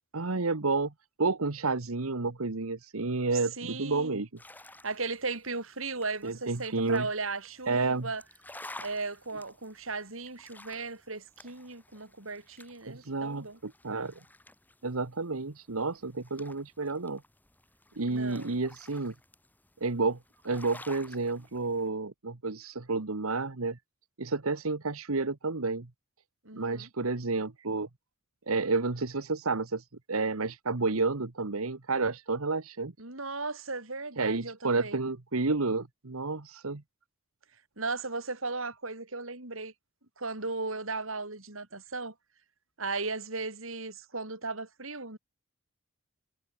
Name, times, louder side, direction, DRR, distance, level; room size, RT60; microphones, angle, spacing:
voice 1, 0.1-0.9 1.2-4.3 6.2-7.1 7.7-8.1 12.9-14.1 14.8-17.2 18.0-19.1 19.8-20.2 20.4-23.8 24.2-25.9 26.6-27.9 28.5-32.9 34.2-36.8, right 3 dB, 90° right, 1.3 m, -30 dB
voice 2, 3.6-4.2 4.8-8.2 8.8-13.6 18.1-18.6 26.4-26.9 33.0-35.0 37.8-39.7 40.2-42.1 42.8-45.2, right 3 dB, 70° right, 5.9 m, -36 dB
sound 1, 4.4-21.9, left 2 dB, 10° left, 7.3 m, -53 dB
head